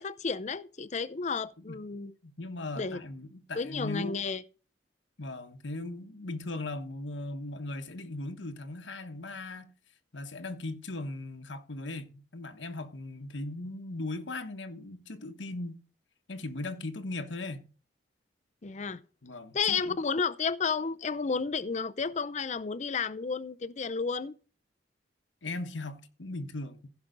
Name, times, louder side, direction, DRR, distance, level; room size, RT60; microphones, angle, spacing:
voice 1, 0.0-2.1 2.8-3.0 3.5-4.4 18.6-19.0 19.5-24.3, left 5 dB, 40° left, 0.5 m, -32 dB
voice 2, 2.2-4.2 5.2-9.7 10.1-15.8 16.3-17.6 19.2-20.0 25.4-26.9, left 2 dB, 85° left, 1.2 m, -38 dB
15.5 x 5.9 x 3.9 m
head